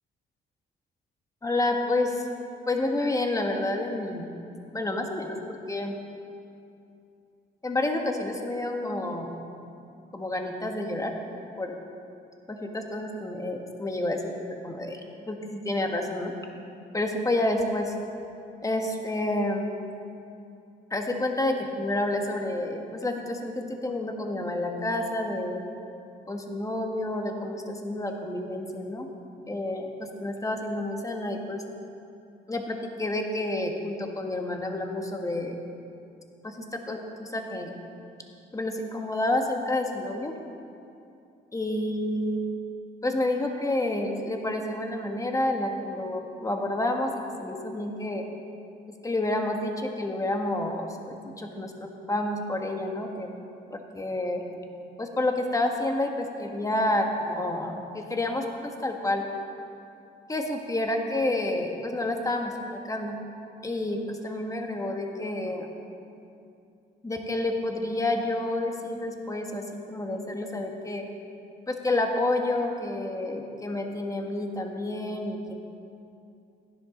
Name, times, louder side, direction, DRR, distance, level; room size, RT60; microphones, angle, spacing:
voice 1, 1.4-2.3 2.7-4.3 4.7-6.0 7.6-9.4 10.1-11.1 11.6-11.8 12.5-14.3 14.6-16.3 16.9-17.9 18.6-19.7 20.9-25.6 26.3-29.1 29.5-31.6 32.5-35.6 36.4-37.8 38.5-40.3 41.5-42.4 43.0-47.1 47.4-48.2 49.0-53.3 53.7-54.4 55.0-59.3 60.3-63.2 63.6-65.7 67.0-71.1 71.7-75.5, left 1 dB, 15° left, 3 dB, 1.4 m, -29 dB
16.0 x 10.5 x 3.8 m, 2.6 s
cardioid pair, 90°, 20 cm